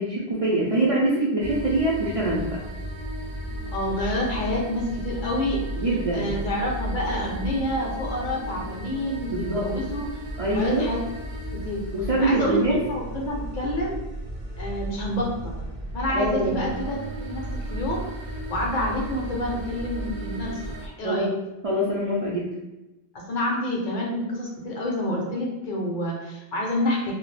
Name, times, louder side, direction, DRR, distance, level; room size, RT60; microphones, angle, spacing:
voice 1, 0.0-2.6 5.8-6.4 9.3-9.7 10.4-10.9 11.9-12.8 16.1-16.6 21.0-21.3 21.6-22.5, right 1 dB, 55° right, -6 dB, 0.4 m, -24 dB
sound 1, 1.4-20.9, right 1 dB, 70° right, 0.8 m, -34 dB
voice 2, 3.7-5.6 6.1-10.1 10.5-11.0 11.5-11.8 12.2-14.0 14.6-17.4 17.7-18.1 18.5-21.3 23.1-27.1, left 1 dB, 60° left, -2 dB, 0.6 m, -28 dB
2.3 x 2.1 x 3.1 m, 1.0 s
omnidirectional pair, 1.0 m